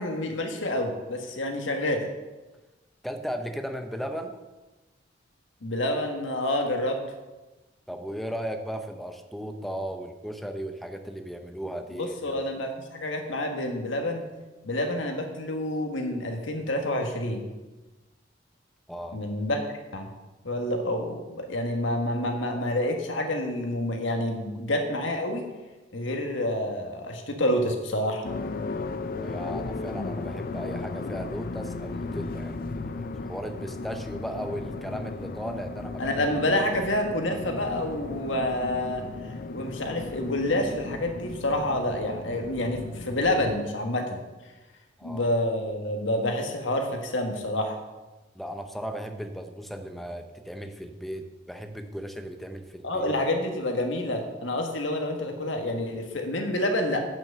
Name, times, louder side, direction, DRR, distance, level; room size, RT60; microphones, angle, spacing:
voice 1, 0.0-2.0 5.6-7.0 12.0-14.3 14.6-17.5 19.1-19.6 19.9-20.1 20.4-25.4 25.9-28.2 36.0-44.2 45.0-47.8 52.8-57.1, left 1 dB, 80° left, 3 dB, 1.6 m, -28 dB
voice 2, 3.0-4.4 7.9-12.4 18.9-19.2 29.2-36.1 45.0-45.3 48.3-53.1, equal, ahead, 6 dB, 0.7 m, -36 dB
sound 1, 28.2-43.6, left 3 dB, 50° left, 0.5 m, -36 dB
9.0 x 5.9 x 6.8 m, 1.1 s
head